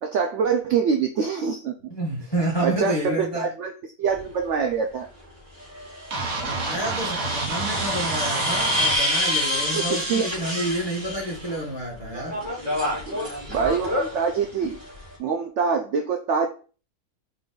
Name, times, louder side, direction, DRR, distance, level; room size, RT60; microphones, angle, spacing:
voice 1, 0.0-1.7 2.6-3.7 4.0-5.1 9.7-10.3 13.1-13.2 13.5-14.8 15.2-16.5, right 6 dB, 80° right, 4 dB, 0.6 m, -25 dB
voice 2, 1.9-3.5 6.4-12.4, right 1 dB, 20° left, -3 dB, 1.0 m, -29 dB
sound 1, 4.1-4.2 5.6-11.6 11.9-15.2, left 1 dB, 30° right, 1.8 m, -28 dB
sound 2, 6.1-9.0, right 3 dB, 60° right, 1.3 m, -28 dB
4.0 x 3.3 x 3.6 m, 0.37 s
omnidirectional pair, 1.8 m